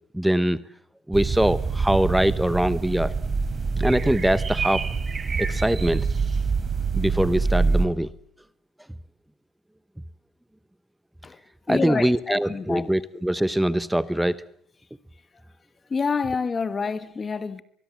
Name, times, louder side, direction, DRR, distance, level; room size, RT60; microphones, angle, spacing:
voice 1, 0.1-0.6 1.1-3.1 3.8-4.8 5.4-6.1 6.9-8.1 11.7-14.4, right 1 dB, 5° right, 1.0 m, -23 dB
sound 1, 1.1-7.9, right 4 dB, 35° right, 4.0 m, -25 dB
voice 2, 11.7-12.9 15.9-17.6, left 5 dB, 30° left, 1.5 m, -27 dB
24.0 x 21.5 x 7.5 m
cardioid pair, 90°, 0 cm